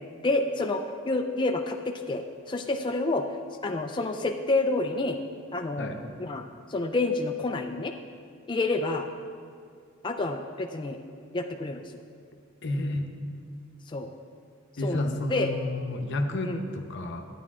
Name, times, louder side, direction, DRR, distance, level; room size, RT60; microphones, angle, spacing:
voice 1, 0.2-3.2 3.6-5.2 5.5-5.9 6.2-6.4 6.7-7.9 8.5-9.1 10.0-11.0 11.3-11.8 13.9-14.1 14.8-15.5 16.5-16.6, left 2 dB, 25° left, 4 dB, 0.4 m, -28 dB
voice 2, 12.6-13.1 14.8-17.3, left 1 dB, 60° left, 5 dB, 0.8 m, -30 dB
10.5 x 9.1 x 3.6 m, 2.2 s
head